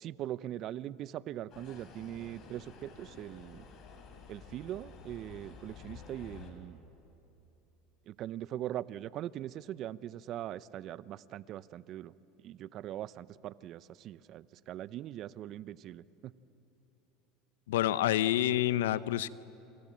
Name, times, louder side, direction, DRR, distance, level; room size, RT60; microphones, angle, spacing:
voice 1, 0.0-3.6 4.3-6.8 8.1-12.1 12.4-16.3, right 12 dB, 50° right, 17 dB, 0.7 m, -41 dB
sound 1, 1.5-6.5, left 5 dB, 50° left, 5.2 m, -51 dB
voice 2, 17.7-19.3, left 13 dB, 85° left, 16 dB, 0.7 m, -28 dB
28.0 x 26.0 x 7.5 m, 2.9 s
hypercardioid pair, 90°, 0 cm